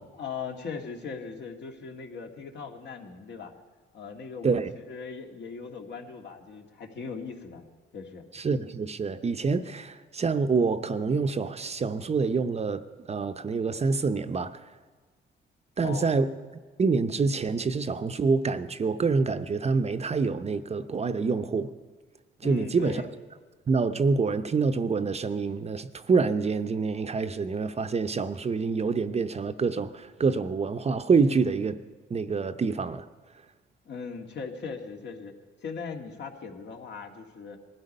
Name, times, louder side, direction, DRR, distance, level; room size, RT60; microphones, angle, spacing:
voice 1, 0.1-3.5 3.9-7.7 7.9-8.3 15.8-16.1 22.4-23.1 33.9-35.3 35.6-37.6, left 5 dB, 60° left, 1.9 m, -39 dB
voice 2, 8.3-12.8 13.1-14.6 15.8-16.3 16.8-21.7 22.4-23.0 23.7-31.8 32.1-33.1, right 4 dB, 35° right, 0.7 m, -26 dB
19.5 x 12.5 x 5.4 m
cardioid pair, 90°, 20 cm